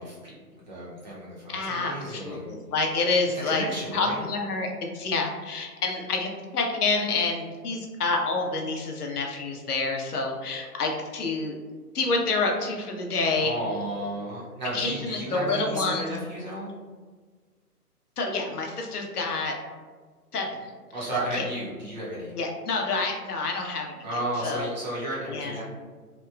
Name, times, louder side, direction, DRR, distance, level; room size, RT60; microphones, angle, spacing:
voice 1, 0.0-2.5 3.5-4.2 13.4-16.7 20.9-22.3 24.0-25.6, right 1 dB, 30° right, -7 dB, 0.6 m, -33 dB
voice 2, 1.5-3.6 3.9-11.6 11.9-13.6 14.7-16.1 18.2-19.6 20.3-20.6 21.3-21.5 22.4-24.7 25.3-25.6, left 3 dB, 70° left, 2 dB, 0.6 m, -28 dB
2.8 x 2.1 x 2.2 m, 1.5 s
figure-of-eight pair, 140°, 47 cm